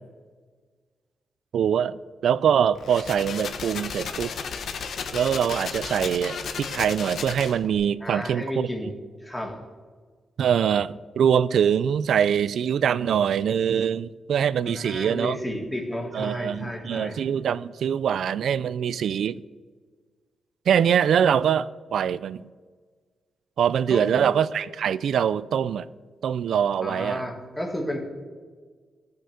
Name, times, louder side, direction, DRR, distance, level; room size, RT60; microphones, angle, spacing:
voice 1, 1.5-4.3 5.1-8.7 10.4-15.4 16.1-19.4 20.7-22.4 23.6-25.9 26.2-27.2, right 8 dB, 80° right, 0.4 m, -23 dB
sound 1, 2.7-7.7, left 6 dB, 65° left, 1.1 m, -34 dB
voice 2, 8.0-8.9 9.2-9.6 14.6-17.2 23.9-24.2 26.8-28.0, left 1 dB, 10° left, 1.7 m, -32 dB
15.0 x 6.6 x 6.6 m
wide cardioid pair, 145°, 0 cm